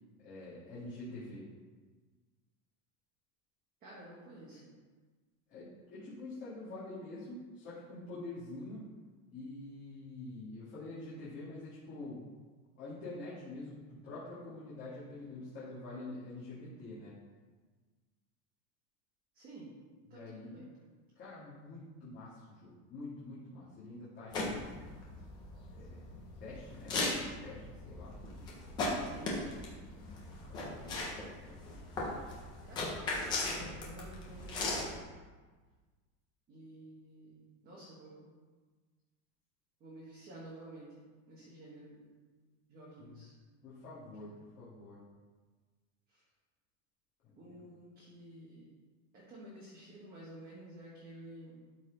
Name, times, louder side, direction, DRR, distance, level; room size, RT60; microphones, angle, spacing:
voice 1, 0.2-1.5 5.5-8.8 9.3-12.5 12.8-17.1 20.1-20.7 21.2-24.7 25.7-26.0 26.4-28.1 30.4-31.1 31.4-31.8 43.0-43.2 43.6-45.0 47.3-47.7, left 2 dB, 25° left, -10 dB, 1.9 m, -46 dB
voice 2, 3.8-4.7 19.3-19.7 20.1-20.7 29.0-29.4 32.6-35.0 36.5-38.3 39.8-42.2 42.7-43.3 46.1-46.2 47.4-48.7 49.1-51.6, right 1 dB, 20° right, -6 dB, 1.2 m, -51 dB
sound 1, 24.3-35.0, left 2 dB, 10° left, 0.4 m, -38 dB
12.0 x 4.2 x 3.8 m, 1.4 s
supercardioid pair, 180°, 46 cm